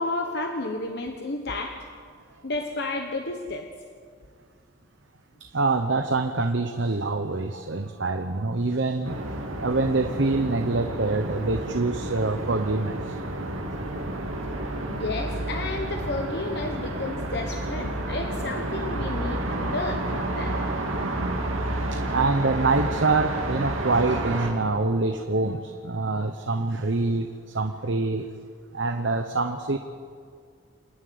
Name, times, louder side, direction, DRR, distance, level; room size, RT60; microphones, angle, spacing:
voice 1, 0.0-1.8 2.4-3.7 14.9-20.6, left 2 dB, 55° left, 4 dB, 1.2 m, -31 dB
voice 2, 5.5-9.2 9.6-13.2 21.9-28.3 28.7-29.8, right 3 dB, 60° right, 7 dB, 0.9 m, -25 dB
sound 1, 9.0-24.5, right 1 dB, 85° right, 2.6 m, -30 dB
27.5 x 9.9 x 9.5 m, 2.2 s
head